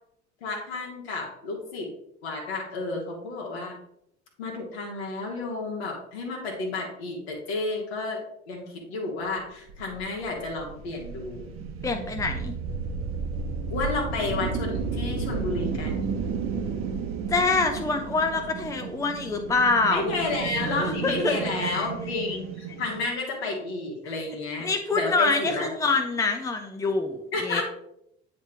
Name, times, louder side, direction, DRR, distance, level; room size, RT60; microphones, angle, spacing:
voice 1, 0.4-1.9 2.2-3.8 4.4-8.2 8.5-11.5 13.7-16.1 19.9-25.7 27.3-27.6, left 3 dB, 65° left, -1 dB, 1.6 m, -31 dB
sound 1, 9.7-23.1, right 5 dB, 40° right, 1.0 m, -33 dB
voice 2, 11.8-12.5 17.3-20.1 20.6-21.3 21.6-21.9 24.6-27.6, left 3 dB, 10° left, 5 dB, 0.7 m, -25 dB
8.8 x 3.4 x 4.5 m, 0.75 s
figure-of-eight pair, 60°, 34 cm